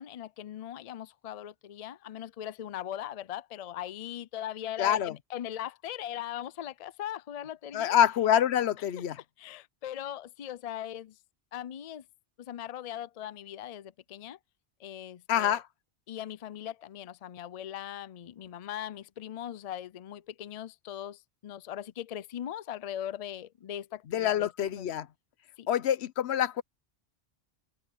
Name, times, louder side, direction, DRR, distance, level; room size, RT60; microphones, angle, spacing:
voice 1, 0.0-7.9 9.4-11.2 11.5-12.0 12.4-14.4 14.8-15.6 16.1-24.9 25.6-25.7, left 11 dB, 50° left, 0.5 m, -40 dB
voice 2, 4.8-5.1 7.7-9.2 15.3-15.6 24.1-25.1 25.7-26.6, left 10 dB, 80° left, 1.0 m, -26 dB
omnidirectional pair, 1.1 m